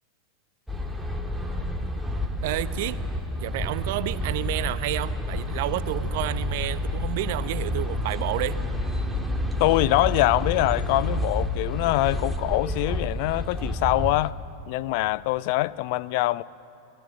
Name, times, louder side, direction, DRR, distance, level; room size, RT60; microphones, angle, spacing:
sound 1, 0.7-14.3, left 1 dB, ahead, 1.9 m, -29 dB
voice 1, 2.4-3.0 3.4-8.6, right 15 dB, 50° right, 0.8 m, -30 dB
voice 2, 9.6-14.3 14.7-16.4, left 18 dB, 45° left, 0.4 m, -24 dB
28.5 x 18.5 x 6.9 m
figure-of-eight pair, 90°, 0 cm